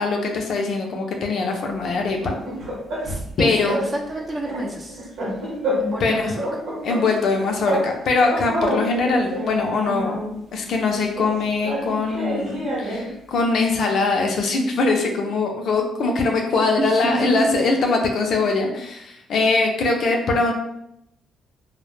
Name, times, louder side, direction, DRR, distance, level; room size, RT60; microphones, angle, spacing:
voice 1, 0.0-2.3 3.4-3.8 6.0-6.3 6.8-10.2 10.5-20.5, left 3 dB, 65° left, 2 dB, 0.4 m, -22 dB
sound 1, 2.0-3.3 3.7-3.9 4.2-6.1 6.3-7.9 8.2-10.3 11.2-13.1, equal, 80° right, 0.9 m, -28 dB
voice 2, 3.0-5.0 5.8-6.4 16.8-17.6, right 2 dB, 30° right, 0 dB, 0.5 m, -28 dB
2.1 x 2.0 x 3.0 m, 0.79 s
cardioid pair, 90°, 0 cm